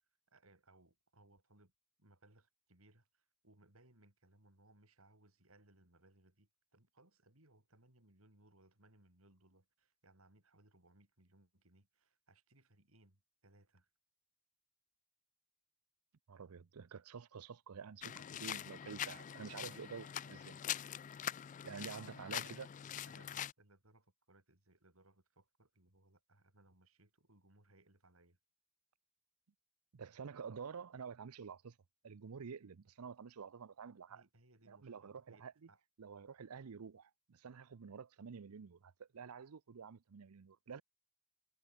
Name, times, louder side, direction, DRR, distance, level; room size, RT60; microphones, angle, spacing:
voice 1, 0.3-1.7 2.0-13.9 22.3-28.4 34.1-35.8, right 2 dB, 65° right, 5.2 m, -68 dB
voice 2, 16.3-20.6 21.6-22.7 29.9-31.8 32.0-34.2 34.7-35.5 36.0-40.8, right 6 dB, 85° right, 0.6 m, -49 dB
sound 1, 18.0-23.5, left 10 dB, 35° left, 0.3 m, -44 dB
head